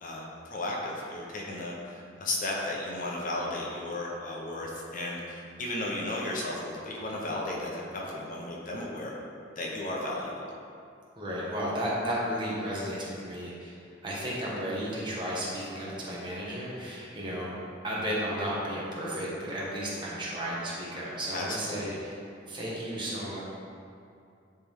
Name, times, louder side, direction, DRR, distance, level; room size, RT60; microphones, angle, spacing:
voice 1, 0.0-9.1 9.6-10.4 21.3-22.0, left 1 dB, 45° left, -3 dB, 0.9 m, -34 dB
voice 2, 11.2-13.8 14.0-17.5 17.8-22.2 22.5-23.4, equal, 25° right, -7 dB, 1.4 m, -33 dB
10.0 x 3.4 x 3.7 m, 2.5 s
head